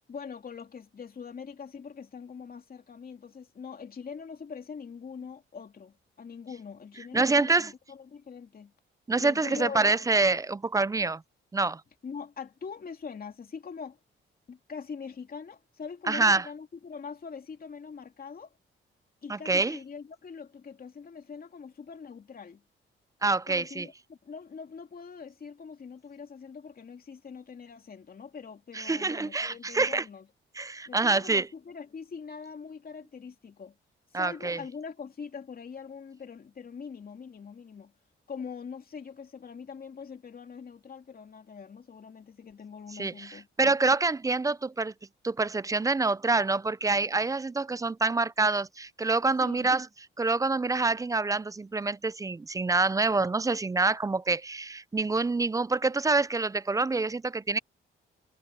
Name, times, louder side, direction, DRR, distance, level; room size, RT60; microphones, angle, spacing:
voice 1, 0.1-8.7 9.2-10.1 12.0-14.0 14.5-18.5 19.2-22.6 23.5-30.3 30.9-33.8 34.1-37.9 38.3-43.5 49.4-49.7, left 6 dB, 45° left, 2.8 m, -43 dB
voice 2, 7.1-7.7 9.1-11.2 11.5-11.8 16.1-16.5 19.3-19.8 23.2-23.9 28.7-30.0 30.6-31.5 34.1-34.6 42.9-44.9 45.2-49.9 50.2-57.6, right 3 dB, 15° right, 0.4 m, -26 dB
cardioid pair, 90°, 21 cm